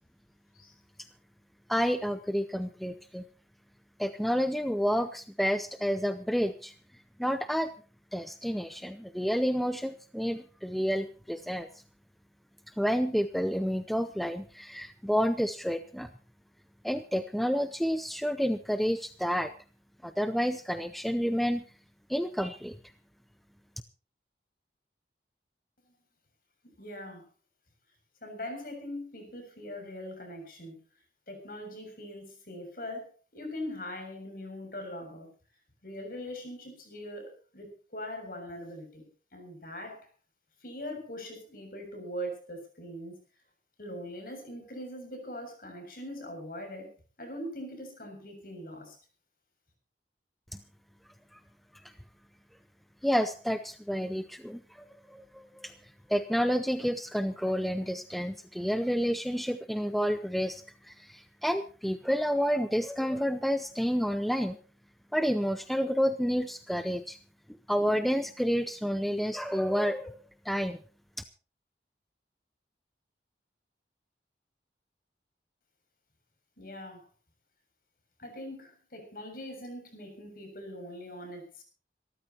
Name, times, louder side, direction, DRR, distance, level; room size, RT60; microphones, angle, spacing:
voice 1, 1.7-3.2 4.0-6.7 7.2-7.7 8.1-11.7 12.8-16.1 16.8-19.5 20.0-21.6 22.1-22.7 53.0-54.8 55.1-55.7 56.1-64.6 65.1-67.2 67.7-70.1 70.4-70.8, equal, ahead, 9 dB, 0.6 m, -29 dB
voice 2, 26.8-27.2 28.2-30.8 31.3-35.3 35.8-39.1 39.3-40.1 40.6-43.1 43.8-49.0 76.6-77.0 78.2-81.6, equal, 50° left, 5 dB, 7.0 m, -41 dB
26.5 x 13.5 x 2.9 m, 0.37 s
head